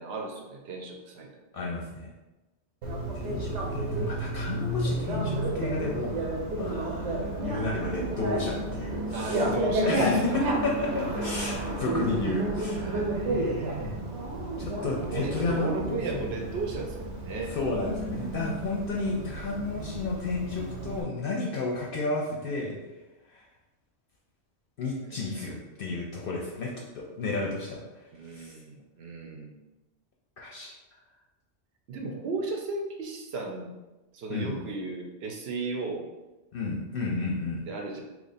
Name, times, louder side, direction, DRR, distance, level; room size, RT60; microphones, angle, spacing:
voice 1, 0.0-1.6 9.1-10.5 12.8-14.2 15.1-18.1 25.0-25.6 28.1-29.5 31.9-33.7 34.1-36.1 37.7-38.0, right 3 dB, 70° right, 1 dB, 0.8 m, -35 dB
voice 2, 1.5-2.1 3.1-6.3 6.5-9.4 9.8-13.1 13.8-14.0 14.6-16.2 17.5-22.8 23.3-23.4 24.8-27.8 28.3-28.5 30.4-30.7 34.3-34.6 36.5-37.6, left 3 dB, 60° left, -2 dB, 0.7 m, -32 dB
Bicycle, 2.8-21.0, right 1 dB, 90° right, 1.0 m, -31 dB
3.0 x 2.4 x 4.0 m, 1.1 s
omnidirectional pair, 1.2 m